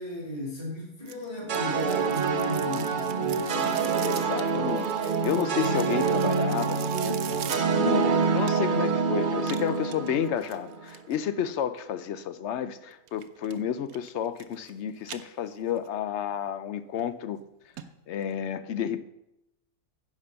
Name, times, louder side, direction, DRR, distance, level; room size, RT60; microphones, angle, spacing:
voice 1, 0.0-3.8, equal, 25° left, 2.6 m, -35 dB
sound 1, 1.1-8.9 9.4-11.2 13.1-13.6 13.9-14.7 15.0-15.9 16.3-16.4 17.0-17.1 17.4-17.5 17.8-17.9 18.2-18.3, right 10 dB, 75° right, 1.1 m, -43 dB
sound 2, 1.5-10.8, right 5 dB, 45° right, 0.7 m, -26 dB
voice 2, 3.2-17.4 18.1-19.0, left 9 dB, 65° left, 0.8 m, -31 dB
10.5 x 5.2 x 6.8 m
omnidirectional pair, 1.5 m